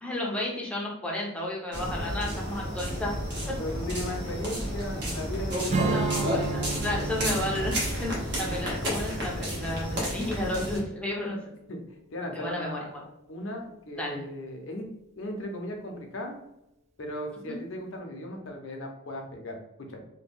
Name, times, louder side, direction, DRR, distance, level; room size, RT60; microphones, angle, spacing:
voice 1, 0.0-3.1 3.5-3.6 5.8-7.7 8.0-11.4 12.3-13.0 14.0-14.2 17.5-17.6, left 1 dB, 5° left, -3 dB, 0.6 m, -32 dB
sound 1, 1.7-10.8, equal, 55° right, 0.9 m, -32 dB
voice 2, 3.6-6.3 8.3-8.6 11.7-11.8 12.1-12.9 13.3-14.9 15.2-16.4 17.0-20.0, left 1 dB, 65° left, 2 dB, 0.6 m, -37 dB
Strum, 5.7-11.0, right 4 dB, 35° right, 0.3 m, -33 dB
2.8 x 2.2 x 3.5 m, 0.83 s
head